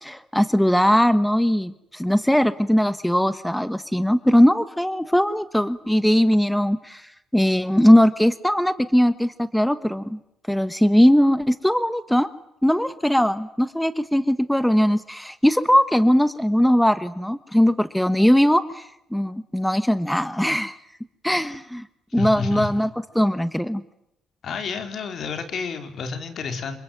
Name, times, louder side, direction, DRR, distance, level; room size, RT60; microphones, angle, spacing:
voice 1, 0.0-10.2 10.5-12.3 12.6-20.8 21.2-21.8 22.1-22.9 23.1-23.8, equal, 5° left, 13 dB, 1.3 m, -20 dB
voice 2, 22.1-22.8 24.4-26.8, left 5 dB, 60° left, 8 dB, 4.4 m, -30 dB
27.5 x 23.0 x 9.2 m, 0.81 s
cardioid pair, 90°, 0 cm